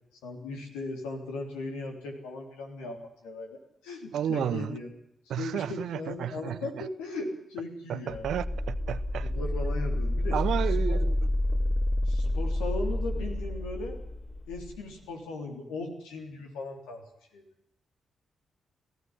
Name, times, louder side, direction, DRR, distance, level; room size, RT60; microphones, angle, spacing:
voice 1, 0.2-4.9 5.4-8.3 9.2-10.4 10.7-11.0 12.1-14.0 14.5-17.0 17.3-17.4, left 3 dB, 85° left, 3.5 m, -38 dB
voice 2, 4.1-4.7 5.3-6.9 7.9-9.3 10.3-11.1, right 10 dB, 70° right, 0.8 m, -32 dB
sound 1, 8.1-14.8, left 1 dB, 30° left, 4.7 m, -29 dB
19.0 x 14.5 x 9.9 m
hypercardioid pair, 40°, 0 cm